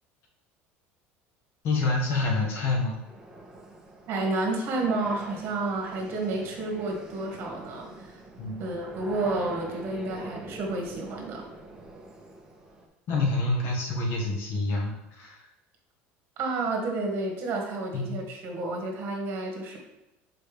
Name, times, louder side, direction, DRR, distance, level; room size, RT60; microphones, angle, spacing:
voice 1, 1.6-3.0 8.4-8.8 13.1-15.4 17.9-18.2, left 3 dB, 50° left, 0 dB, 1.5 m, -27 dB
sound 1, 3.1-12.9, right 2 dB, 10° right, 0.7 m, -44 dB
voice 2, 4.1-8.1 8.6-11.5 16.4-19.8, right 2 dB, 45° right, 1 dB, 1.5 m, -30 dB
6.7 x 4.3 x 3.5 m, 0.92 s
cardioid pair, 160°, 5 cm